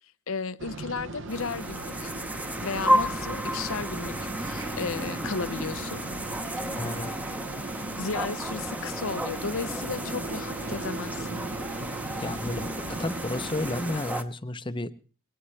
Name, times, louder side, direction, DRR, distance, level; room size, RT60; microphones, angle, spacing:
voice 1, 0.3-2.1 2.6-6.0 8.0-11.4, left 4 dB, 70° left, 0.7 m, -34 dB
sound 1, 0.6-14.0, right 2 dB, 55° right, 1.0 m, -38 dB
sound 2, 1.3-14.2, equal, 5° right, 0.9 m, -32 dB
voice 2, 6.7-7.1 12.2-14.9, left 2 dB, 20° left, 0.7 m, -32 dB
21.5 x 18.5 x 3.3 m
head